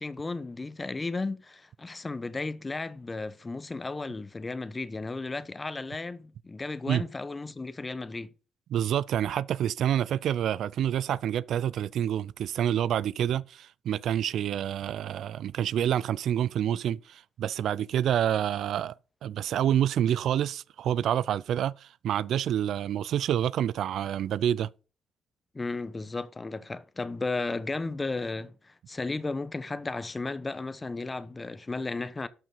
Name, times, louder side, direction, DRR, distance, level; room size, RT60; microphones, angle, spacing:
voice 1, 0.0-8.3 25.5-32.3, left 3 dB, 25° left, 1.0 m, -34 dB
voice 2, 8.7-18.9 19.2-24.7, right 10 dB, 70° right, 0.4 m, -28 dB
12.5 x 5.9 x 5.5 m
cardioid pair, 90°, 0 cm